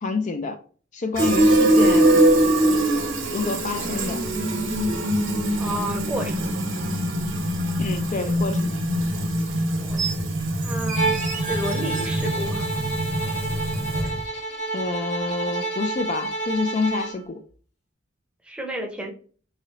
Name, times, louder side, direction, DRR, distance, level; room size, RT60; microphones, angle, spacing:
voice 1, 0.0-0.6 0.9-2.2 3.3-4.2 7.8-8.9 14.7-17.4, left 4 dB, 40° left, 0.4 m, -27 dB
Fill (with liquid), 1.2-14.3, right 1 dB, 90° right, 1.1 m, -23 dB
voice 2, 5.6-6.7 9.8-10.3 10.6-12.7 18.4-19.1, equal, 5° right, 0.7 m, -32 dB
sound 1, 10.0-10.2 10.6-12.3 13.7-13.8, right 6 dB, 40° right, 0.7 m, -32 dB
Bowed string instrument, 10.9-17.2, right 2 dB, 60° left, 1.4 m, -30 dB
3.8 x 3.2 x 2.8 m
head